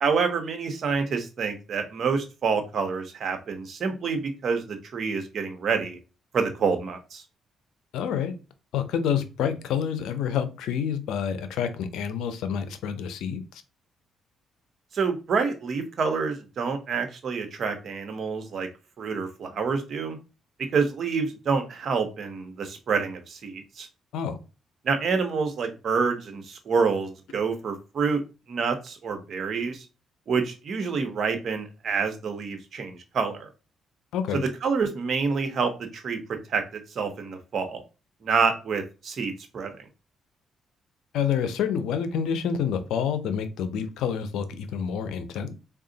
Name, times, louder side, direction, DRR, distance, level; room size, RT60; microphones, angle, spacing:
voice 1, 0.0-6.0 6.3-7.2 14.9-18.7 19.0-20.2 20.7-23.9 24.8-28.2 28.5-29.8 30.3-33.5 34.3-36.2 36.5-36.6 36.9-37.8 38.2-39.7, right 5 dB, 55° right, 6 dB, 0.9 m, -27 dB
voice 2, 7.9-8.3 8.7-13.6 24.1-24.4 34.1-34.4 41.1-45.5, left 7 dB, 85° left, 11 dB, 0.5 m, -28 dB
3.6 x 2.3 x 3.9 m, 0.31 s
cardioid pair, 90°, 0 cm